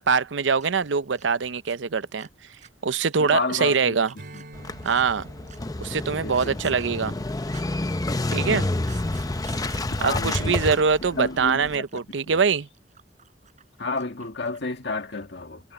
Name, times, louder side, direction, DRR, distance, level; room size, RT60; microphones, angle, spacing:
voice 1, 0.0-2.3 2.8-4.1 4.8-5.3 5.8-7.2 8.3-8.7 10.0-12.7, right 5 dB, 85° right, 0.7 m, -23 dB
sound 1, 0.6-0.9 1.1-3.8 4.1-5.1 5.5-5.8 6.2-7.8 8.1-10.0 10.3-10.4 10.6-10.9 11.2-14.9 15.1-15.3, right 8 dB, 40° right, 7.8 m, -51 dB
voice 2, 3.2-4.0 4.3-4.4 6.1-6.8 7.0-7.3 10.0-10.8 11.1-11.9 12.3-12.4 13.8-15.7, left 3 dB, 65° left, 1.8 m, -31 dB
Strum, 4.2-8.9, right 1 dB, 60° right, 4.1 m, -49 dB
Motorcycle / Engine starting, 4.5-11.8, left 2 dB, 20° left, 0.7 m, -29 dB
head